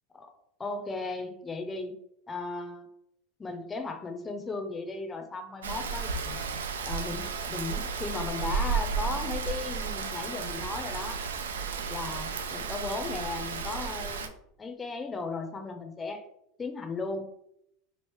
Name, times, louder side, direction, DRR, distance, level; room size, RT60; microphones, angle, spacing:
voice 1, 0.6-2.0 2.3-2.9 3.4-6.4 6.8-11.2 11.9-14.3 14.6-16.2 16.6-17.3, left 3 dB, 20° left, 6 dB, 0.5 m, -36 dB
Rain, 5.6-14.3, right 5 dB, 90° right, 0.3 m, -33 dB
3.1 x 2.7 x 3.0 m, 0.78 s
hypercardioid pair, 95°, 0 cm